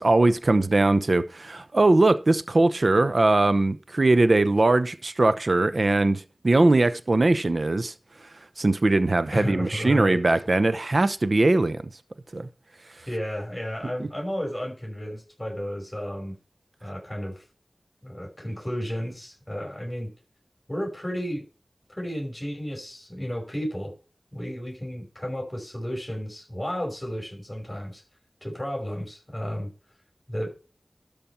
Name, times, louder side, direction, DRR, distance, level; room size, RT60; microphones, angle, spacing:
voice 1, 0.0-7.9 8.6-11.8 12.3-12.5 14.0-14.1, right 2 dB, 60° right, 0.8 m, -21 dB
voice 2, 9.3-10.2 13.1-16.3 16.8-17.4 18.0-20.1 20.7-21.4 21.9-23.9 24.3-28.0 28.4-29.7 30.3-30.5, equal, 15° left, 5.6 m, -32 dB
12.5 x 5.3 x 4.4 m
wide cardioid pair, 45°, 0 cm